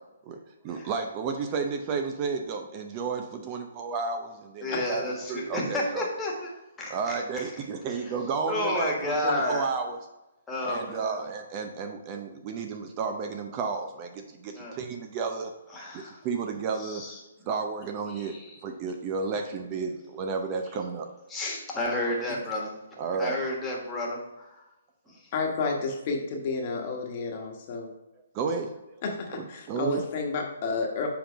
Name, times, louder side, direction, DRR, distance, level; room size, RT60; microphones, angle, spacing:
voice 1, 0.6-5.0 5.3-6.1 6.9-10.0 10.6-15.5 16.2-17.0 17.5-18.4 18.6-21.1 23.0-23.4 25.6-25.8 28.3-28.7 29.3-30.0, right 5 dB, 30° right, 5 dB, 0.6 m, -32 dB
voice 2, 4.6-6.5 6.8-7.4 7.9-8.2 8.5-9.7 10.5-11.2 14.5-14.8 15.7-16.2 16.7-17.5 18.1-18.6 21.3-22.8 23.2-24.6 25.1-25.3, left 1 dB, 10° left, -3 dB, 1.5 m, -32 dB
voice 3, 25.3-27.9 29.0-31.1, left 4 dB, 40° left, 1 dB, 1.2 m, -31 dB
6.9 x 3.8 x 5.0 m, 0.99 s
hypercardioid pair, 150°, 0 cm